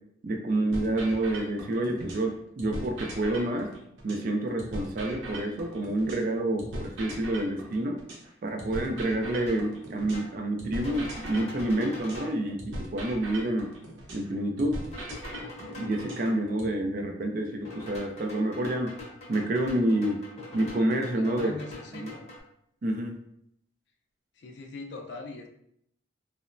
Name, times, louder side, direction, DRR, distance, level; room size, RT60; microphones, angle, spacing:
voice 1, 0.2-3.7 4.0-8.0 8.4-13.7 14.1-14.8 15.8-19.0 19.3-20.2 20.5-21.5 21.9-22.1 22.8-23.2, right 1 dB, 45° right, 3 dB, 0.3 m, -28 dB
sound 1, 0.7-2.3 2.6-6.3 6.6-10.3 10.6-14.3 14.6-16.7, right 1 dB, 85° right, 0.7 m, -40 dB
sound 2, 9.4-9.7 10.1-10.4 10.8-12.4 14.9-16.3 17.6-22.4, left 1 dB, 35° left, 0.7 m, -43 dB
voice 2, 21.1-22.3 24.4-25.5, left 3 dB, 65° left, 3 dB, 0.4 m, -41 dB
2.9 x 2.0 x 2.5 m, 0.73 s
head